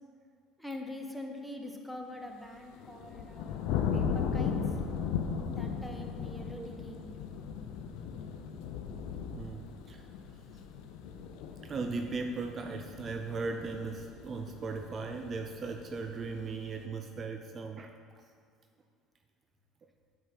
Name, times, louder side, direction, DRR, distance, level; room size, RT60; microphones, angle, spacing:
voice 1, 0.6-4.7 5.5-7.1, left 1 dB, ahead, 1 dB, 1.0 m, -44 dB
sound 1, 2.6-16.8, left 6 dB, 75° left, 0.6 m, -37 dB
voice 2, 9.4-10.0 11.6-17.9, right 4 dB, 40° right, 5 dB, 0.5 m, -38 dB
8.8 x 4.7 x 5.8 m, 2.2 s
supercardioid pair, 105°, 0 cm